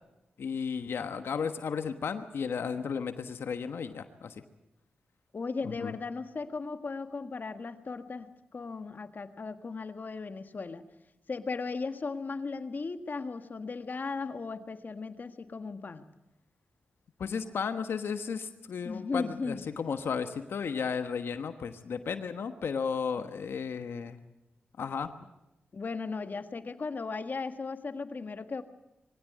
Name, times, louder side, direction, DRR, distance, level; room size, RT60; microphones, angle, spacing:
voice 1, 0.4-4.4 5.6-6.0 17.2-24.2 24.8-25.1, left 6 dB, 80° left, 9 dB, 1.3 m, -34 dB
voice 2, 5.3-10.9 11.3-16.0 18.8-19.6 23.2-23.3 25.7-28.6, left 4 dB, 50° left, 9 dB, 1.6 m, -36 dB
22.0 x 16.5 x 9.4 m, 0.93 s
cardioid pair, 65°, 4 cm